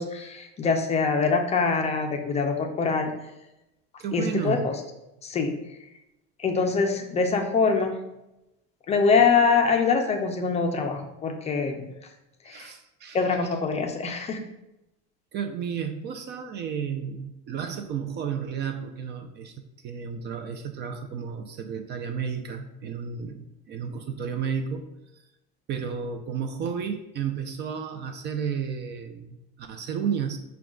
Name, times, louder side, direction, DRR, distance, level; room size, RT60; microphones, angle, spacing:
voice 1, 0.0-3.1 4.1-4.7 5.2-5.5 6.4-8.0 8.9-11.9 12.5-12.7 13.1-14.5, left 5 dB, 25° left, 4 dB, 0.4 m, -24 dB
voice 2, 4.0-4.7 12.4-13.2 15.3-19.5 19.8-24.9 25.1-25.2 25.7-30.4, right 7 dB, 40° right, 7 dB, 0.4 m, -32 dB
5.9 x 2.3 x 3.6 m, 0.91 s
cardioid pair, 135°, 29 cm